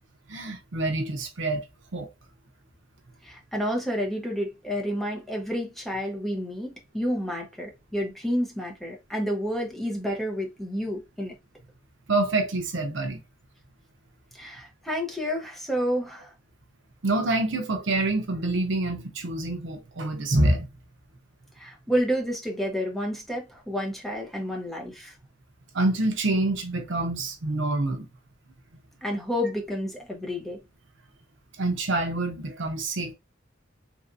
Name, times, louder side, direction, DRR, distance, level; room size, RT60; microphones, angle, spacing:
voice 1, 0.3-1.6 1.9-2.1 12.1-13.2 17.0-20.7 25.7-28.1 31.6-33.1, right 2 dB, 70° right, 0.7 m, -26 dB
voice 2, 3.2-11.4 14.3-16.3 21.6-25.1 29.0-30.6, equal, ahead, 0.9 m, -30 dB
3.2 x 2.6 x 2.5 m
head